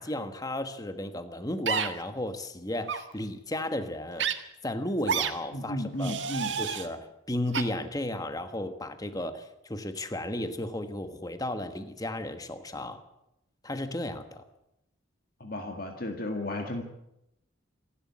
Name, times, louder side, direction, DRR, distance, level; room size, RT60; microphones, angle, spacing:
voice 1, 0.0-4.3 4.6-6.2 6.6-13.0 13.6-14.4, left 1 dB, 20° left, 9 dB, 1.3 m, -34 dB
sound 1, 1.7-1.9 2.8-3.0 4.2-4.3 5.1-5.3 6.0-6.9 7.5-7.6, right 7 dB, 65° right, 1.7 m, -29 dB
voice 2, 5.5-6.6 15.4-16.8, left 1 dB, 50° left, 4 dB, 2.0 m, -33 dB
27.0 x 11.5 x 8.7 m, 0.84 s
head